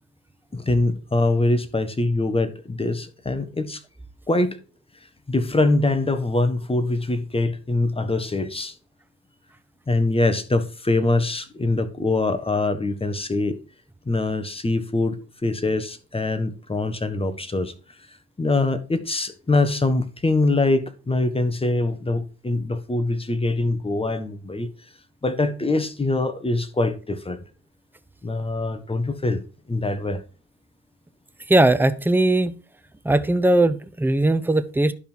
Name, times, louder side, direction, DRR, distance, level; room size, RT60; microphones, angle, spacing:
voice 1, 0.5-3.8 4.3-4.6 5.3-8.7 9.9-13.6 14.0-17.7 18.4-24.7 25.2-27.4 28.2-29.4 29.7-30.2, left 2 dB, 20° left, 1.4 m, -23 dB
voice 2, 31.5-32.6 33.0-34.9, right 2 dB, 5° right, 0.8 m, -19 dB
11.5 x 5.4 x 4.5 m
cardioid pair, 90°, 30 cm